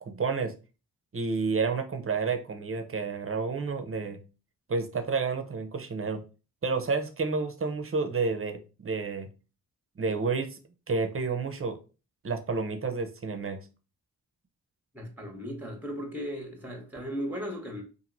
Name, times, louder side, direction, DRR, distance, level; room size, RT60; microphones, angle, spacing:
voice 1, 0.1-0.5 1.1-4.2 4.7-6.2 6.6-9.3 10.0-10.6 10.9-11.8 12.2-13.6, right 4 dB, 35° right, 0.6 m, -30 dB
voice 2, 14.9-17.8, equal, 5° right, 0.9 m, -36 dB
2.9 x 2.6 x 2.5 m
cardioid pair, 40°, 39 cm